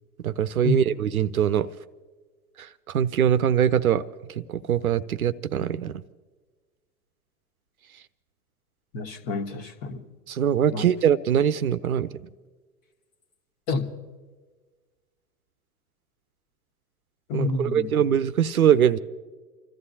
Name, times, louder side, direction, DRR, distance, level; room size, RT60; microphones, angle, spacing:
voice 1, 0.2-1.7 2.6-4.0 4.4-6.0 10.3-12.1 17.3-19.0, right 9 dB, 65° right, 15 dB, 0.7 m, -22 dB
voice 2, 8.9-10.0 10.7-10.9 13.7-13.9 17.3-17.9, left 3 dB, 40° left, 7 dB, 1.6 m, -28 dB
29.5 x 14.0 x 2.8 m, 1.4 s
figure-of-eight pair, 100°, 46 cm